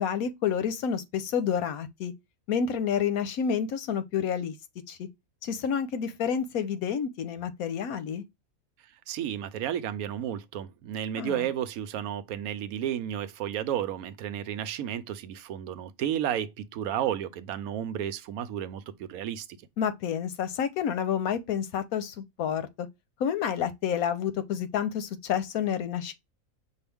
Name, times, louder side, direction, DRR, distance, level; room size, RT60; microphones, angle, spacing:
voice 1, 0.0-2.1 2.5-4.6 4.9-5.1 5.4-8.2 11.2-11.5 19.8-22.9 23.2-26.1, left 8 dB, 85° left, 1.2 m, -29 dB
voice 2, 9.1-19.5, right 10 dB, 80° right, 1.0 m, -32 dB
5.6 x 2.4 x 3.3 m
omnidirectional pair, 1.5 m